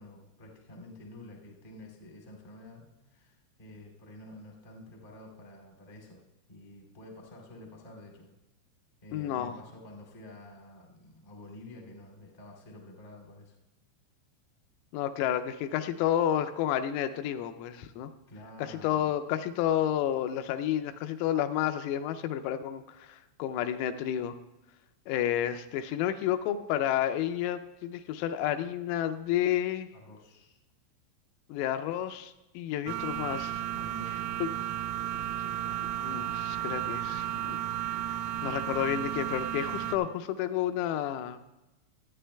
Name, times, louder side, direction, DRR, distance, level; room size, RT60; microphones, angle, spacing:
voice 1, 0.0-6.2 6.5-8.3 9.0-13.5 18.3-19.1 29.9-30.6 33.7-34.2, left 1 dB, 65° left, -2 dB, 0.5 m, -49 dB
voice 2, 9.1-9.6 14.9-18.1 18.6-24.3 25.1-29.9 31.5-33.6 34.4-34.5 35.2-37.6 38.1-41.4, left 11 dB, 85° left, 9 dB, 3.2 m, -31 dB
sound 1, 32.9-40.0, right 12 dB, 85° right, 3.2 m, -33 dB
24.5 x 9.2 x 2.2 m, 1.0 s
omnidirectional pair, 6.0 m